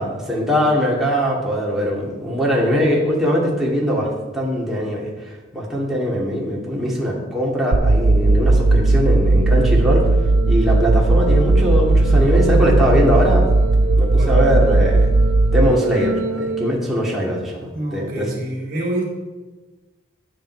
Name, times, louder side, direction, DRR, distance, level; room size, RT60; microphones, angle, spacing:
voice 1, 0.0-5.1 5.5-10.1 10.5-13.5 14.0-15.1 15.5-18.3, equal, ahead, -5 dB, 2.4 m, -21 dB
sound 1, 7.7-16.7, right 2 dB, 85° right, 0.6 m, -16 dB
voice 2, 17.7-19.0, right 1 dB, 50° right, -7 dB, 3.3 m, -26 dB
10.5 x 9.2 x 4.7 m, 1.2 s
head